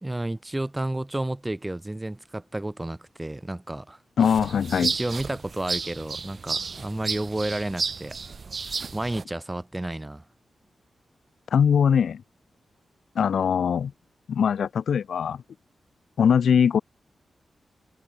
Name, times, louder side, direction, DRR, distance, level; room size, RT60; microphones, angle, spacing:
voice 1, 0.0-4.0 4.8-8.2 8.9-10.2, right 1 dB, 15° right, 1.7 m, -31 dB
voice 2, 4.2-4.9 11.5-12.2 13.2-13.9 14.3-15.4 16.2-16.8, left 7 dB, 80° left, 0.4 m, -21 dB
sound 1, 4.2-9.2, right 5 dB, 45° right, 0.9 m, -32 dB
wide cardioid pair, 120°, 0 cm